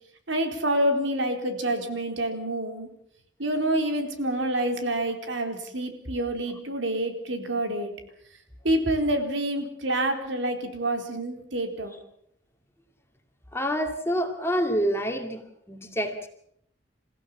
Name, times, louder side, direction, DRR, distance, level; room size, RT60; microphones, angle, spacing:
voice 1, 0.3-2.9 3.4-7.9 8.6-11.9, right 1 dB, 85° right, 5 dB, 4.0 m, -27 dB
voice 2, 13.5-15.4 15.7-16.3, equal, 15° left, 5 dB, 2.4 m, -27 dB
28.5 x 15.5 x 7.3 m, 0.71 s
head